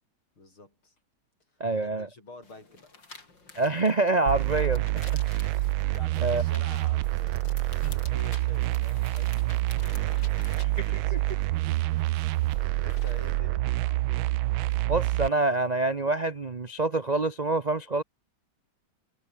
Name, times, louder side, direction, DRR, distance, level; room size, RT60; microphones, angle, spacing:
voice 1, 0.4-0.9 1.5-2.9 5.0-5.5 5.9-7.4 7.9-11.8 12.4-14.3, left 2 dB, 80° left, 8.5 m, -49 dB
voice 2, 1.6-2.1 3.6-5.2 6.2-6.4 7.8-8.0 10.8-11.2 14.9-18.0, right 2 dB, 45° right, 0.5 m, -26 dB
sound 1, 2.4-13.4, left 3 dB, 60° left, 5.5 m, -50 dB
sound 2, 4.3-15.3, right 18 dB, 80° right, 1.3 m, -27 dB
omnidirectional pair, 2.3 m